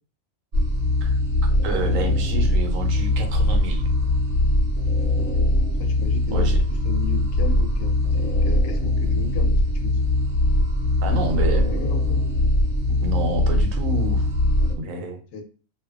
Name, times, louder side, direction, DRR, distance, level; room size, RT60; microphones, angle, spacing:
sound 1, 0.5-14.7, left 1 dB, 55° right, 0.7 m, -21 dB
voice 1, 1.6-3.8 6.3-6.6 11.0-11.6 12.9-14.3 14.8-15.2, right 3 dB, 85° right, 4 dB, 1.0 m, -29 dB
voice 2, 5.2-10.1 11.5-12.2 15.3-15.4, left 3 dB, 80° left, 5 dB, 0.9 m, -35 dB
2.5 x 2.1 x 2.3 m, 0.37 s
omnidirectional pair, 1.4 m